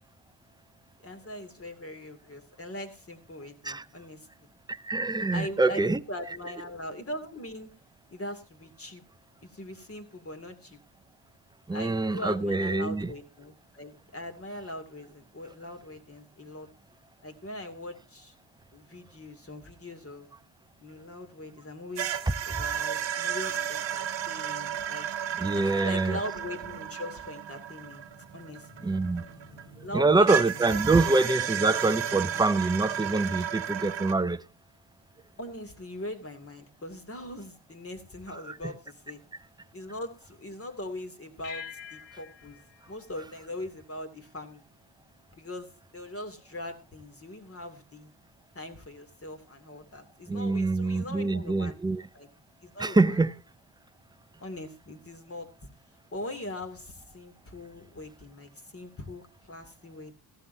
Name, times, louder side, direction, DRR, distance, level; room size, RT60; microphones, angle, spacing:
voice 1, 1.0-4.3 5.3-7.7 8.1-9.0 9.4-10.8 11.7-16.7 17.2-18.3 18.7-20.3 20.8-22.1 22.4-25.1 25.5-28.0 28.3-28.9 29.8-30.8 35.4-39.2 39.7-42.6 42.9-44.6 45.3-48.1 48.5-51.8 52.1-52.3 52.6-53.2 54.4-55.5 56.1-60.1, left 1 dB, 30° left, 2.5 m, -41 dB
voice 2, 4.7-6.0 11.7-13.1 22.5-22.6 25.4-26.2 28.8-29.2 29.9-34.4 38.5-38.6 50.3-52.0 52.8-53.3, right 3 dB, 10° right, 0.5 m, -25 dB
sound 1, 22.0-29.6 30.3-34.1, right 9 dB, 70° right, 1.2 m, -33 dB
sound 2, 27.1-34.7, right 1 dB, 60° left, 7.3 m, -52 dB
sound 3, 41.4-44.2, left 7 dB, 75° left, 1.5 m, -46 dB
15.0 x 12.5 x 2.7 m
cardioid pair, 100°, 45 cm